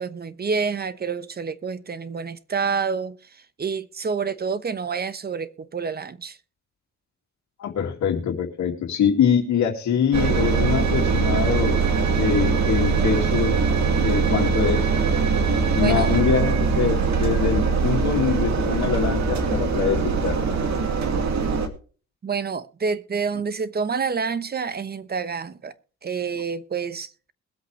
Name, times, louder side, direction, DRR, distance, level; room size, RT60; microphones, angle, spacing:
voice 1, 0.0-6.4 15.8-16.2 22.2-25.7 26.0-27.1, right 5 dB, 30° right, 1.0 m, -28 dB
voice 2, 7.6-11.7 12.2-13.6 14.0-14.9 15.8-20.4, left 8 dB, 70° left, 2.4 m, -24 dB
Engine, 10.1-21.7, right 5 dB, 65° right, 2.3 m, -22 dB
21.5 x 8.1 x 3.3 m
cardioid pair, 90°, 30 cm